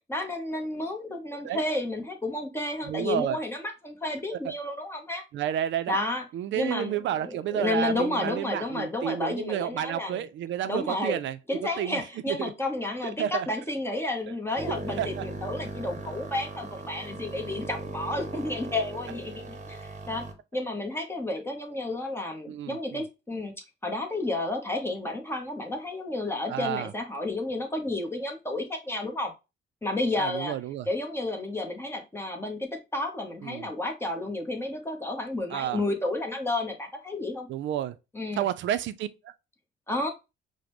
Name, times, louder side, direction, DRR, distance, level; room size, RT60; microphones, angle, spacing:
voice 1, 0.1-5.2 5.9-6.2 6.6-10.2 10.7-11.2 11.5-20.2 20.5-23.5 23.8-29.3 29.8-30.6 30.9-37.5 38.1-38.4 39.9-40.1, left 2 dB, 10° left, 0.9 m, -31 dB
voice 2, 2.9-3.4 5.3-6.0 6.3-11.4 11.8-12.0 12.3-12.5 13.2-13.5 14.7-15.2 22.5-23.0 26.5-26.9 30.2-30.9 33.4-33.7 35.5-35.8 37.5-38.0 38.4-39.1, right 11 dB, 70° right, 0.4 m, -30 dB
sound 1, 14.6-20.3, right 2 dB, 35° right, 0.8 m, -38 dB
5.0 x 2.1 x 3.0 m
cardioid pair, 90°, 20 cm